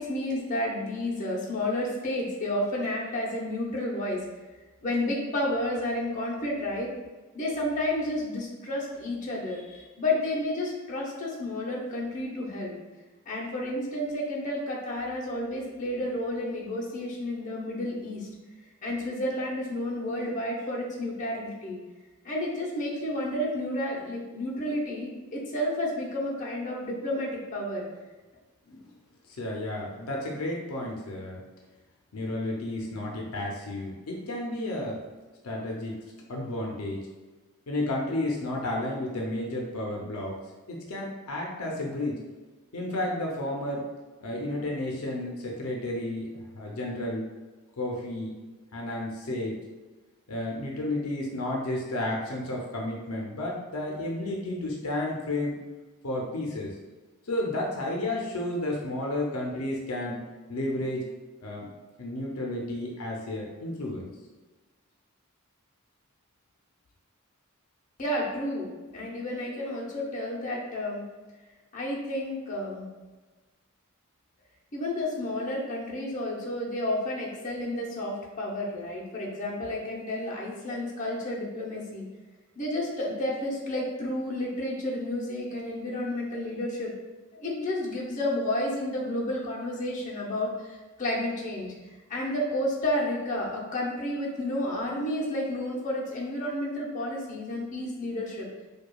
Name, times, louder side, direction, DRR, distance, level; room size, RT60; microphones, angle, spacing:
voice 1, 0.0-4.2 4.8-6.9 7.3-12.7 13.3-18.3 18.8-21.8 22.2-27.9 68.0-71.0 71.7-72.9 74.7-82.0 82.6-86.9 87.4-90.5 91.0-91.7 92.1-98.5, left 1 dB, 35° left, -4 dB, 0.7 m, -31 dB
voice 2, 29.4-31.4 32.1-35.0 35.4-36.0 36.3-37.0 37.7-40.4 40.7-42.2 42.7-43.9 44.2-47.2 47.8-48.3 48.7-49.6 50.3-55.6 56.0-56.7 57.3-60.2 60.5-61.1 61.4-61.7 62.0-64.0, left 1 dB, 70° left, -1 dB, 0.6 m, -32 dB
4.7 x 2.3 x 2.3 m, 1.3 s
head